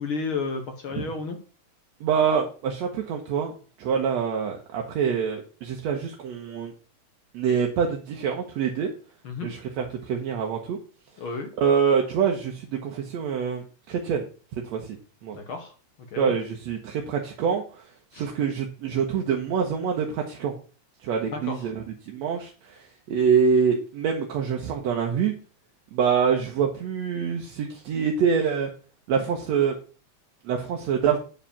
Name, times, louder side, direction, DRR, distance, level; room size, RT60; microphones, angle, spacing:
voice 1, 0.0-1.4 9.2-9.5 11.2-11.5 15.3-15.7 16.1-16.3 18.1-18.2 21.3-21.7, left 4 dB, 55° left, 5 dB, 1.7 m, -32 dB
voice 2, 2.0-3.5 3.8-6.7 7.3-8.9 9.4-10.8 11.6-14.3 14.6-14.8 15.2-15.4 16.2-17.8 18.1-20.5 21.0-22.8 23.1-25.3 25.9-28.7 29.1-29.7 30.5-31.2, right 7 dB, 70° right, 1 dB, 2.2 m, -25 dB
8.9 x 4.9 x 7.0 m, 0.38 s
omnidirectional pair, 3.3 m